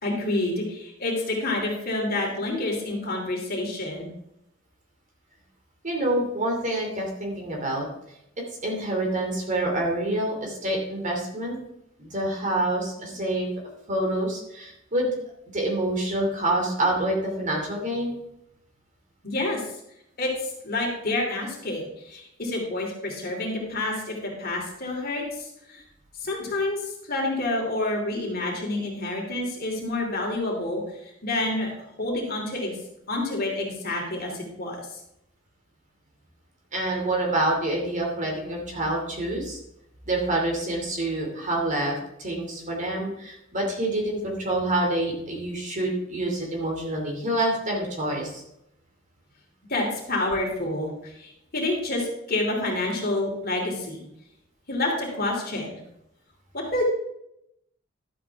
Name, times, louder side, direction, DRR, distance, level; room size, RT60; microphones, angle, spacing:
voice 1, 0.0-4.1 19.2-19.6 20.2-25.8 26.2-32.8 33.1-35.0 49.7-54.0 54.7-55.8 56.5-56.8, left 2 dB, 50° left, -1 dB, 3.1 m, -28 dB
voice 2, 5.8-7.9 8.6-11.6 12.0-13.5 13.9-15.1 15.5-18.1 36.7-39.6 40.0-48.4, right 1 dB, 40° right, 0 dB, 2.7 m, -27 dB
12.0 x 8.4 x 3.6 m, 0.80 s
head